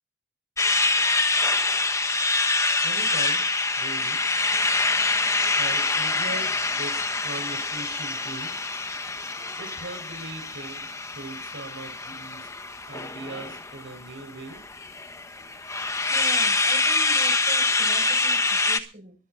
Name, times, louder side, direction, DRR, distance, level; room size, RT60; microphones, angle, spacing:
sound 1, 0.6-18.8, left 3 dB, 15° left, 1.2 m, -25 dB
voice 1, 2.8-3.4 3.8-4.2 5.5-8.5 9.6-12.5 12.9-14.6, right 2 dB, 80° right, 6 dB, 4.6 m, -40 dB
voice 2, 16.1-19.1, right 2 dB, 45° right, 4 dB, 5.6 m, -41 dB
23.0 x 10.5 x 3.8 m, 0.33 s
head